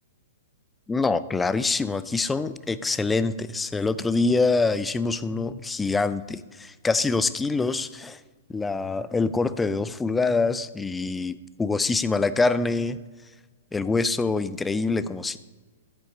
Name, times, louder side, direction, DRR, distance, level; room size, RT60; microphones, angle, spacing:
voice 1, 0.9-8.2 8.5-13.0 13.7-15.4, left 3 dB, 10° left, 15 dB, 0.4 m, -25 dB
11.5 x 7.9 x 3.9 m, 1.3 s
figure-of-eight pair, 110°, 0 cm